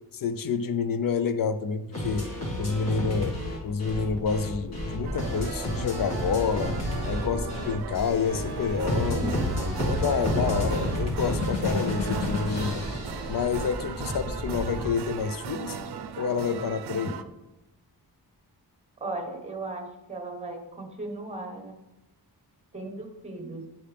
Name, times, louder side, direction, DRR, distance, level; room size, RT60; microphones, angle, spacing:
voice 1, 0.1-2.3 2.6-3.4 3.6-6.8 7.1-9.4 9.8-12.9 13.3-15.8 16.2-17.1, left 6 dB, 60° left, 12 dB, 0.6 m, -28 dB
sound 1, 1.9-13.9, left 1 dB, 40° left, 1.7 m, -31 dB
sound 2, 3.9-16.6 17.2-17.3, equal, 10° left, 1.6 m, -37 dB
sound 3, 5.0-17.2, right 7 dB, 75° right, 0.6 m, -38 dB
voice 2, 19.0-21.7 22.7-23.6, right 2 dB, 15° right, 4 dB, 1.0 m, -37 dB
8.7 x 5.7 x 3.4 m, 0.97 s
wide cardioid pair, 145°, 39 cm